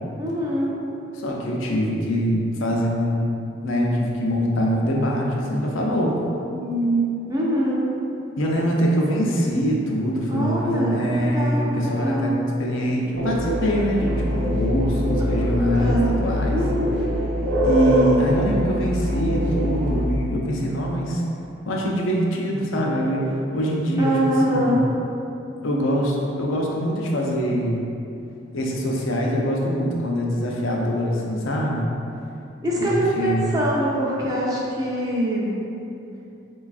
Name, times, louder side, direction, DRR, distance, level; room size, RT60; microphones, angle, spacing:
voice 1, 0.2-0.8 6.5-7.9 10.3-12.4 15.7-16.1 16.5-17.2 24.0-24.9 32.6-35.6, right 1 dB, 20° right, -5 dB, 0.4 m, -24 dB
voice 2, 1.1-3.3 3.6-6.1 8.4-16.6 17.6-21.2 21.7-23.2 23.5-24.1 24.4-24.8 25.6-27.8 28.5-31.9 32.8-32.9 33.2-33.5, equal, 90° left, -2 dB, 0.5 m, -23 dB
sound 1, 13.1-20.0, equal, 75° right, 0.5 m, -23 dB
4.0 x 2.3 x 2.4 m, 2.7 s
head